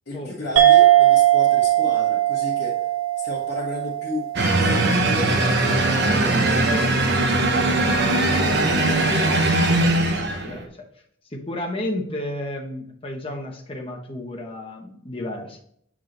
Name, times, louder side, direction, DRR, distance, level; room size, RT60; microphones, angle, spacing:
voice 1, 0.1-2.8 3.2-4.3 4.6-8.0 9.0-9.5, left 2 dB, 50° left, -6 dB, 1.3 m, -34 dB
sound 1, 0.6-5.5, right 13 dB, 85° right, 0.6 m, -19 dB
sound 2, 4.4-10.7, right 2 dB, 55° right, 0.8 m, -20 dB
voice 2, 8.3-9.2 9.8-10.8 11.3-15.6, left 1 dB, 25° left, 1 dB, 1.0 m, -33 dB
7.6 x 3.7 x 3.9 m, 0.65 s
head